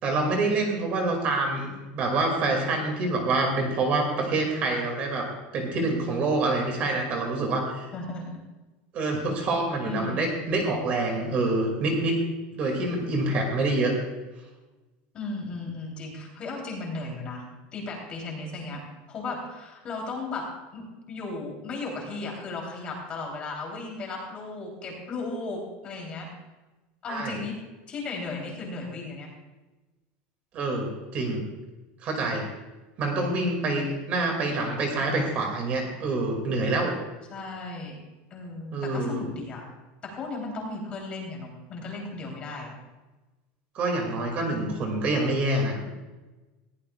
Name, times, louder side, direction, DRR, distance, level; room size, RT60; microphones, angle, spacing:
voice 1, 0.0-7.9 8.9-12.2 12.5-13.9 27.1-27.4 30.5-31.4 32.0-32.5 33.0-37.0 38.7-39.2 43.7-45.8, right 2 dB, 30° right, 2 dB, 2.2 m, -26 dB
voice 2, 7.9-8.4 9.6-10.3 15.1-17.4 17.7-18.8 19.1-20.5 20.7-26.3 27.0-27.6 27.9-29.3 37.3-38.0 38.3-39.6 40.0-42.7, left 3 dB, 25° left, 0 dB, 3.2 m, -35 dB
20.0 x 16.0 x 2.4 m, 1.2 s
supercardioid pair, 180°, 5 cm